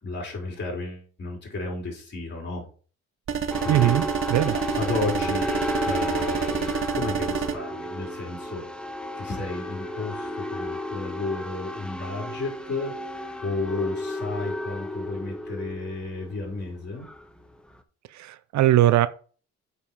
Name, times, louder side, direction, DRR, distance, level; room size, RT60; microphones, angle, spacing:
voice 1, 0.0-2.6 3.6-3.9 4.7-5.5 5.8-8.7 9.2-13.0 13.4-17.1, left 2 dB, 35° left, 0 dB, 3.8 m, -33 dB
sound 1, 3.3-7.6, right 7 dB, 45° right, 1.0 m, -28 dB
sound 2, 3.5-17.8, left 1 dB, 5° left, 1.0 m, -33 dB
voice 2, 3.7-4.0 4.3-4.5 18.1-19.1, right 14 dB, 70° right, 15 dB, 0.5 m, -20 dB
7.2 x 5.5 x 4.8 m, 0.40 s
cardioid pair, 90°, 30 cm